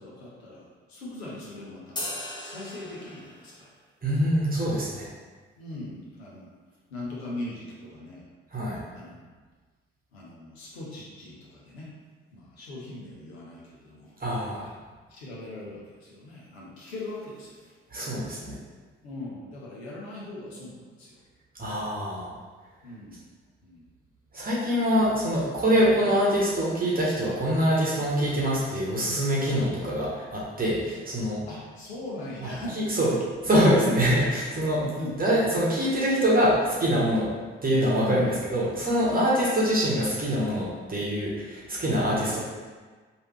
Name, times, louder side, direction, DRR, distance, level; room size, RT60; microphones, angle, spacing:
voice 1, 0.0-3.7 5.6-6.5 6.9-8.3 8.9-9.3 10.1-11.9 12.3-14.1 14.5-14.7 15.1-17.7 19.0-21.2 22.8-23.2 23.6-23.9 31.5-33.2 33.8-34.0 34.8-35.1 38.0-38.3 42.0-42.3, left 2 dB, 80° left, -5 dB, 0.7 m, -40 dB
sound 1, 2.0-3.6, left 1 dB, 15° left, 0.8 m, -37 dB
voice 2, 4.0-5.1 8.5-8.8 14.2-14.6 17.9-18.6 21.6-22.3 24.3-31.4 32.4-33.1 33.5-34.8 35.2-37.3 37.6-42.4, equal, 30° right, -6 dB, 1.0 m, -24 dB
3.2 x 2.6 x 3.1 m, 1.4 s
figure-of-eight pair, 40°, 31 cm